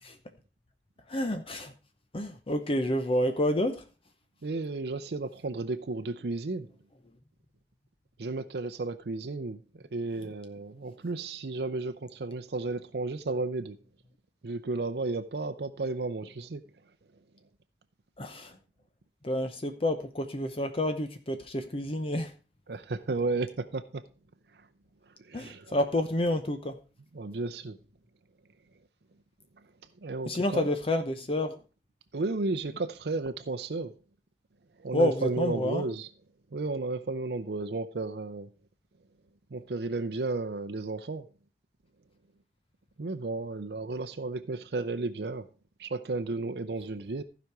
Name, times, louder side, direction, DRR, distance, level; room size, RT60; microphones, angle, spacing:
voice 1, 1.1-1.7 2.1-3.8 18.2-18.6 19.2-22.3 25.3-26.8 30.3-31.6 34.9-35.8, left 1 dB, 30° left, 0.7 m, -29 dB
voice 2, 4.4-6.7 8.2-13.8 14.4-16.6 22.7-24.0 24.5-24.7 25.1-25.8 27.1-27.8 30.0-30.7 32.1-34.0 34.8-36.1 36.5-38.5 39.5-41.3 43.0-45.5 45.8-47.2, right 3 dB, 60° right, 0.6 m, -33 dB
15.0 x 5.1 x 4.6 m
head